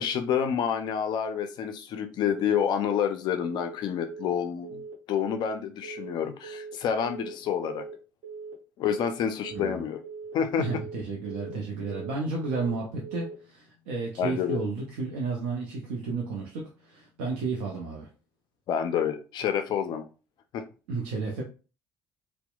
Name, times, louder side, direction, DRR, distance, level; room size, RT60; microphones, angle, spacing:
voice 1, 0.0-4.8 5.1-7.9 8.8-10.0 10.3-10.8 14.2-14.6 18.7-20.1 20.5-20.6, left 8 dB, 55° left, 8 dB, 0.3 m, -28 dB
Telephone, 2.2-2.5 2.8-3.1 3.4-3.7 4.0-4.3 4.6-4.9 5.2-5.5 5.8-6.1 6.4-6.7 7.0-7.3 7.6-7.9 8.2-8.5 8.8-9.1 9.4-9.7 10.0-10.3 10.6-10.9 11.2-11.5 11.8-12.1 12.4-12.7 13.0-13.3, right 5 dB, 55° right, 1.0 m, -41 dB
voice 2, 9.5-9.8 10.6-18.1 20.9-21.4, right 3 dB, 70° right, -1 dB, 0.5 m, -32 dB
2.8 x 2.0 x 2.3 m, 0.34 s
hypercardioid pair, 55°, 9 cm